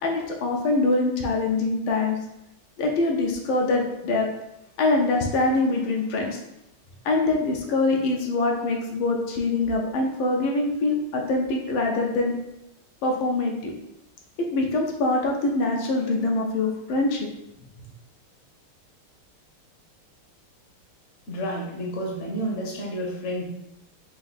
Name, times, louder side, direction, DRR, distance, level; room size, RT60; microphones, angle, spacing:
voice 1, 0.0-2.2 2.8-4.3 4.8-6.4 7.0-12.3 13.0-13.7 14.4-17.3, left 2 dB, 75° left, 0 dB, 1.5 m, -24 dB
voice 2, 21.3-23.5, equal, 50° left, -2 dB, 0.9 m, -30 dB
4.4 x 2.6 x 3.9 m, 0.88 s
omnidirectional pair, 2.3 m